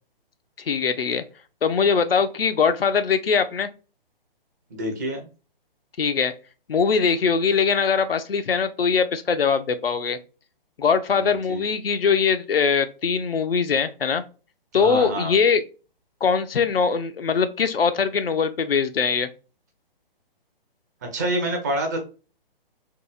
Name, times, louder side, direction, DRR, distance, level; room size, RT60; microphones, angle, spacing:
voice 1, 0.6-1.2 1.6-3.7 6.0-6.3 6.7-10.2 10.8-14.2 14.7-15.6 16.2-19.3, left 6 dB, 75° left, 0.5 m, -22 dB
voice 2, 4.7-5.3 11.2-11.6 14.7-15.4 21.0-22.0, right 1 dB, 20° right, 0.4 m, -27 dB
2.8 x 2.6 x 2.3 m
figure-of-eight pair, 130°, 29 cm